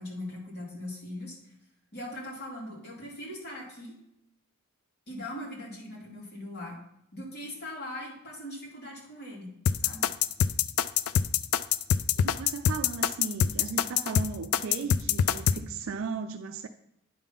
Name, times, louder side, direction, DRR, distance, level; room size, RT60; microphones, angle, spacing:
voice 1, 0.0-1.4 1.9-3.9 5.1-6.8 7.1-9.5 9.8-10.1, left 1 dB, 50° left, 2.5 m, -40 dB
sound 1, 9.7-15.6, left 8 dB, 90° left, 0.3 m, -25 dB
voice 2, 12.2-16.7, right 5 dB, 65° right, 0.4 m, -36 dB
9.2 x 3.6 x 5.7 m
head